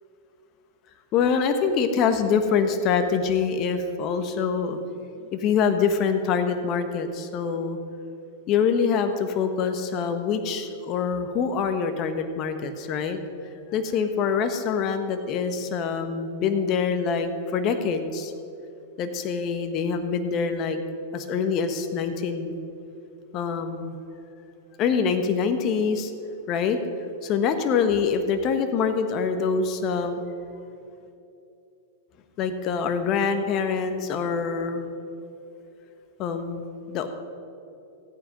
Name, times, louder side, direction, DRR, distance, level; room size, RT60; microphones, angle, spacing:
voice 1, 1.1-4.8 5.2-7.8 8.5-13.2 13.7-18.3 19.0-20.8 21.1-22.5 23.3-24.0 24.8-26.1 26.5-26.8 27.2-30.2 32.4-34.9 36.2-37.1, left 6 dB, 40° left, 8 dB, 1.2 m, -25 dB
14.5 x 8.8 x 5.1 m, 2.7 s
hypercardioid pair, 105°, 0 cm